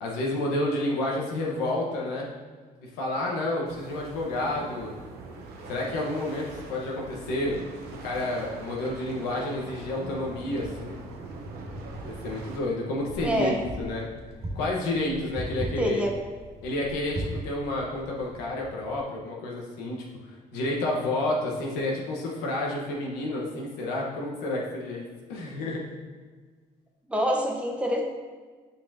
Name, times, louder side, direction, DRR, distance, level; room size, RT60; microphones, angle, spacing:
voice 1, 0.0-2.3 2.8-4.9 5.7-7.6 8.0-11.0 12.0-14.1 14.5-16.0 16.6-20.0 20.5-25.0 25.3-26.0, left 1 dB, 90° left, -2 dB, 1.2 m, -30 dB
sound 1, 3.7-12.6, right 3 dB, 75° right, 0.9 m, -42 dB
Wind, 10.1-19.0, right 1 dB, 35° right, 1.7 m, -39 dB
voice 2, 13.2-13.6 15.8-16.1 27.1-28.0, equal, 5° right, 0 dB, 1.2 m, -26 dB
6.9 x 5.2 x 2.7 m, 1.5 s
supercardioid pair, 70°, 16 cm